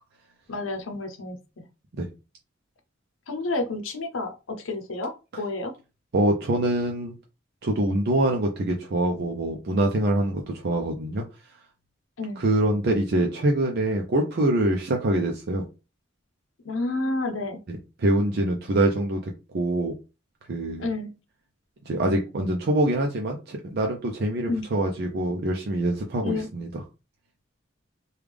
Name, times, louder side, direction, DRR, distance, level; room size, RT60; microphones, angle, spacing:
voice 1, 0.5-1.7 3.3-5.7 12.2-12.4 16.6-17.6 20.8-21.1 24.5-24.7 26.2-26.5, left 2 dB, 85° left, 6 dB, 0.7 m, -30 dB
voice 2, 6.1-7.1 7.6-11.2 12.4-15.6 17.7-19.2 19.5-19.9 20.5-20.8 21.9-26.7, right 1 dB, 55° right, 2 dB, 0.5 m, -24 dB
3.4 x 2.3 x 3.3 m, 0.30 s
head